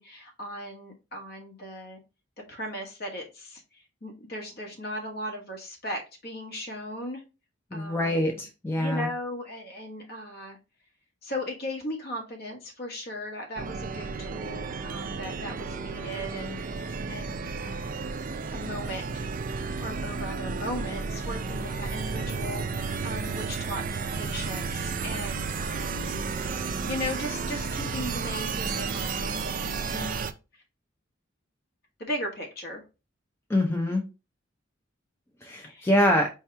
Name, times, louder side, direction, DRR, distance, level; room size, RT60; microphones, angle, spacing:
voice 1, 0.0-2.0 2.5-7.2 7.7-8.4 8.8-10.6 11.2-18.1 18.5-19.4 19.8-30.6 32.0-32.8 35.6-35.9, left 1 dB, 50° left, 2 dB, 1.3 m, -37 dB
voice 2, 7.7-9.1 33.5-34.0 35.4-36.3, left 1 dB, 10° left, 2 dB, 0.5 m, -25 dB
sound 1, 13.6-30.3, right 4 dB, 40° right, 0.4 m, -32 dB
4.6 x 2.9 x 3.3 m, 0.29 s
head